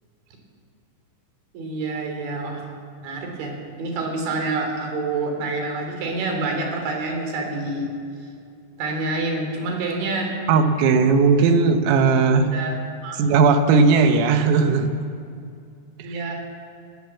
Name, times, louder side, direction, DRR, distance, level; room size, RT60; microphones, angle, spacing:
voice 1, 1.5-2.7 3.0-3.5 3.8-7.9 8.8-10.4 12.5-12.7 13.0-13.2 16.0-16.4, right 3 dB, 65° right, 2 dB, 5.7 m, -27 dB
voice 2, 10.5-12.5 13.2-14.9 16.0-16.2, right 4 dB, 90° right, 7 dB, 4.1 m, -17 dB
21.5 x 20.0 x 7.3 m, 2.4 s
omnidirectional pair, 5.8 m